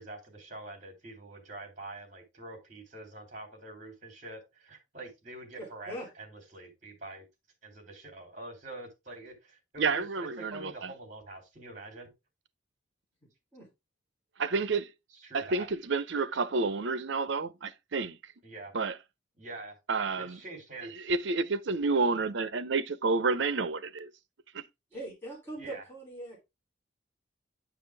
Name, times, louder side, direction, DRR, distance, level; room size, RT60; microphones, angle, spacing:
voice 1, 0.0-7.2 7.6-12.1 15.1-15.7 18.4-18.7 19.4-19.8 20.1-21.1 25.6-25.8, right 2 dB, 40° right, 3.0 m, -45 dB
voice 2, 5.6-6.1 13.5-13.7 24.9-26.4, right 1 dB, 10° left, 3.4 m, -41 dB
voice 3, 9.8-10.9 14.4-14.9 15.3-18.2 18.7-19.0 19.9-20.4 21.0-24.1 24.5-24.6, right 4 dB, 70° right, 0.6 m, -30 dB
9.4 x 5.0 x 3.4 m
head